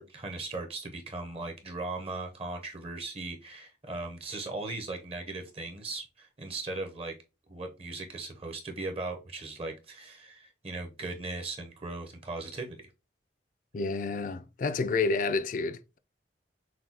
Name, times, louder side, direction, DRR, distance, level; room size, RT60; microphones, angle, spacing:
voice 1, 0.0-7.1 7.5-12.8, right 2 dB, 35° right, 0.7 m, -38 dB
voice 2, 13.7-16.0, left 4 dB, 45° left, 0.3 m, -29 dB
5.8 x 2.2 x 2.8 m
head